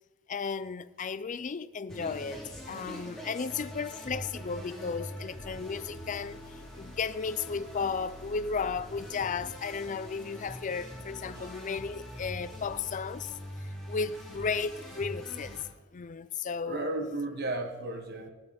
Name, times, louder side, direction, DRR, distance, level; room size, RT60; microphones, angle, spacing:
voice 1, 0.3-15.6 15.9-16.9, left 5 dB, 35° left, 0.4 m, -34 dB
sound 1, 1.9-15.6, equal, 5° left, 4.4 m, -43 dB
voice 2, 11.1-11.6 16.7-18.3, right 2 dB, 50° right, 1.5 m, -35 dB
15.5 x 12.0 x 4.3 m
head